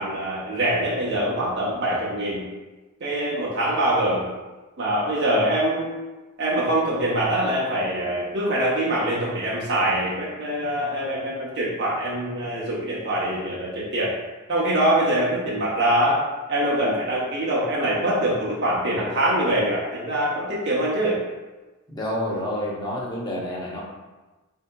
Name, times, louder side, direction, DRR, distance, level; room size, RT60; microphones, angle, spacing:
voice 1, 0.0-2.5 3.0-4.2 4.8-5.9 6.4-14.1 14.5-16.2 16.5-21.2, right 1 dB, 55° right, -6 dB, 0.7 m, -24 dB
voice 2, 21.9-23.8, left 1 dB, 20° left, -4 dB, 0.7 m, -28 dB
4.6 x 2.7 x 2.2 m, 1.2 s
head